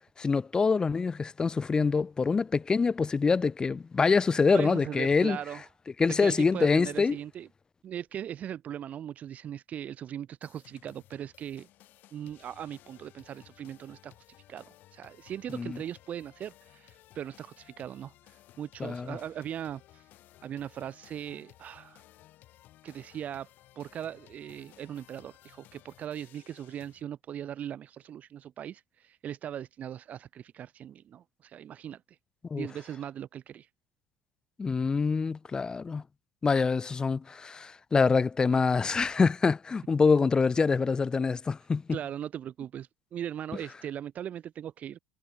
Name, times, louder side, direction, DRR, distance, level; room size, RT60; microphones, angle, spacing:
voice 1, 0.2-5.4 6.0-7.2 15.5-15.8 18.8-19.2 32.5-32.7 34.6-36.0 36.4-42.0, left 4 dB, 20° left, 0.4 m, -25 dB
voice 2, 4.5-5.7 6.2-7.5 7.8-11.7 12.1-14.2 14.5-20.1 20.4-22.0 22.8-23.5 23.8-32.2 32.5-33.7 41.9-45.0, right 10 dB, 45° right, 0.9 m, -39 dB
sound 1, 10.4-27.0, left 14 dB, 55° left, 4.7 m, -58 dB
supercardioid pair, 95°, 4 cm